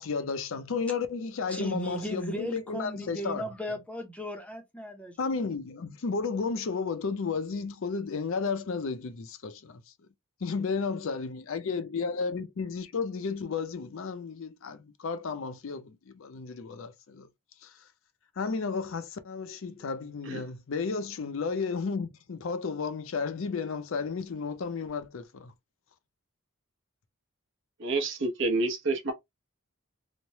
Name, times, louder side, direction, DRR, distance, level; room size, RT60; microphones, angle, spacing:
voice 1, 0.0-3.5 5.2-9.8 10.4-17.3 17.6-17.7 18.4-25.5, left 5 dB, 60° left, 0.5 m, -33 dB
voice 2, 1.5-5.2, equal, 5° left, 0.6 m, -36 dB
voice 3, 27.8-29.1, right 3 dB, 55° right, 0.8 m, -28 dB
3.1 x 2.1 x 2.7 m
head